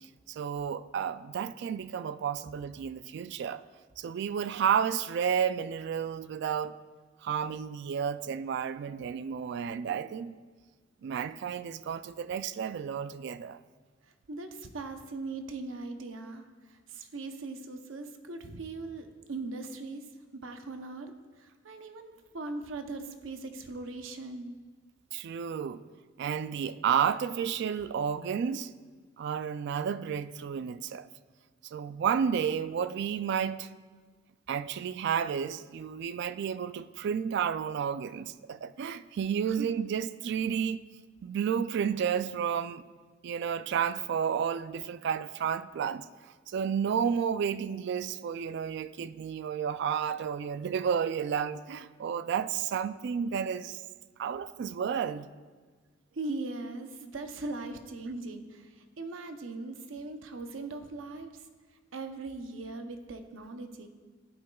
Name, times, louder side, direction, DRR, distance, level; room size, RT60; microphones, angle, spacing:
voice 1, 0.3-3.6 4.0-6.8 7.2-10.3 11.0-13.6 25.1-25.8 26.2-28.7 29.2-31.1 31.7-33.7 34.5-40.8 41.2-42.8 43.2-46.1 46.5-53.8 54.2-55.3, right 7 dB, 60° right, 0.3 m, -31 dB
voice 2, 14.0-24.6 39.5-39.7 56.1-61.5 61.9-63.9, right 3 dB, 80° right, 0.7 m, -40 dB
14.5 x 8.5 x 2.3 m
head